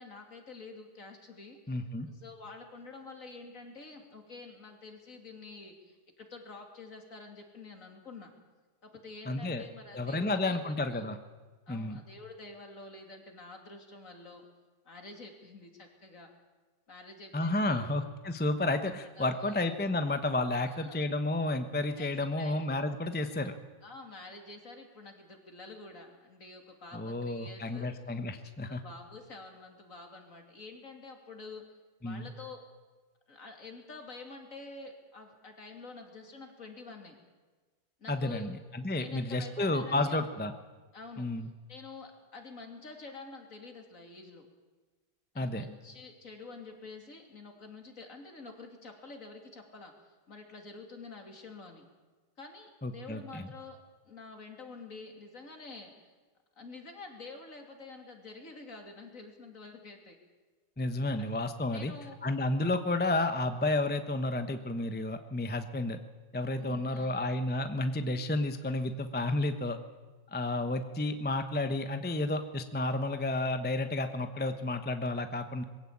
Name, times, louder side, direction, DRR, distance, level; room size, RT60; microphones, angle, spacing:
voice 1, 0.0-1.8 2.1-8.3 8.8-11.1 11.7-14.4 14.8-16.3 16.9-17.8 19.2-19.6 20.5-21.0 22.0-22.1 22.4-22.6 23.8-27.9 28.4-31.6 32.0-32.6 33.3-37.2 38.0-38.5 38.9-40.2 40.9-41.3 41.7-44.5 45.3-51.8 52.4-53.8 54.1-55.9 56.6-60.2 61.2-61.3 61.7-62.2 66.6-67.2, left 3 dB, 40° left, 3 dB, 3.1 m, -48 dB
voice 2, 1.7-2.1 9.3-9.6 9.9-11.2 11.7-12.0 17.3-23.5 26.9-28.8 32.0-32.3 38.1-40.5 41.2-41.5 45.4-45.6 52.8-53.4 60.8-61.9 62.2-66.0 66.3-69.8 70.3-75.6, left 2 dB, 10° left, 8 dB, 0.5 m, -31 dB
21.5 x 16.0 x 8.7 m, 1.3 s
omnidirectional pair, 2.1 m